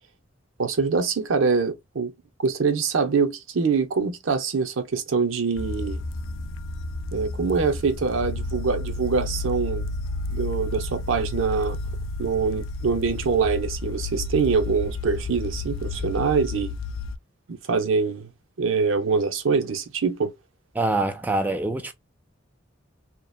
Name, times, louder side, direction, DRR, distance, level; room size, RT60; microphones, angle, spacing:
voice 1, 0.6-2.1 2.4-6.0 7.1-9.9 10.3-11.8 12.2-16.7 17.5-18.3 18.6-20.3, right 5 dB, 85° right, 0.6 m, -24 dB
sound 1, 5.6-17.2, left 2 dB, 85° left, 0.4 m, -31 dB
voice 2, 20.8-21.9, right 2 dB, 10° right, 0.3 m, -24 dB
2.7 x 2.1 x 2.3 m
head